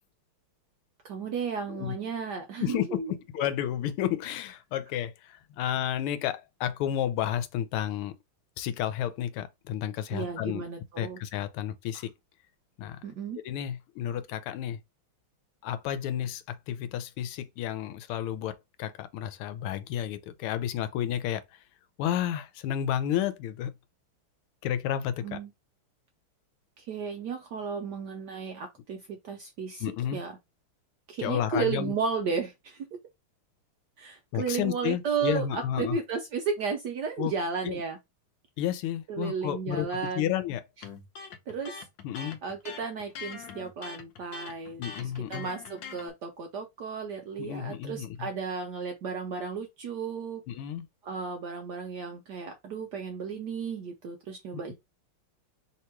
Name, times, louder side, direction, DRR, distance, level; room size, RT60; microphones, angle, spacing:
voice 1, 1.0-3.1 10.1-11.2 13.0-13.4 25.2-25.5 26.8-29.8 30.1-30.4 31.1-32.9 34.0-38.0 39.1-40.3 41.2-41.9 42.4-50.4 51.0-54.7, right 5 dB, 70° right, 1.0 m, -34 dB
voice 2, 2.6-3.0 3.3-8.1 8.6-10.6 11.0-12.1 12.8-13.0 13.4-14.8 15.6-21.4 22.0-23.7 24.6-25.4 29.8-30.2 31.2-31.9 34.3-36.0 37.2-37.3 37.6-37.8 38.6-39.9 40.2-40.6 42.0-42.4 44.8-45.5 47.4-48.3 50.5-50.9 54.5-54.7, left 10 dB, 85° left, 1.5 m, -31 dB
Electric guitar, 40.8-46.1, left 5 dB, 70° left, 1.3 m, -43 dB
3.3 x 2.9 x 4.4 m
omnidirectional pair, 2.4 m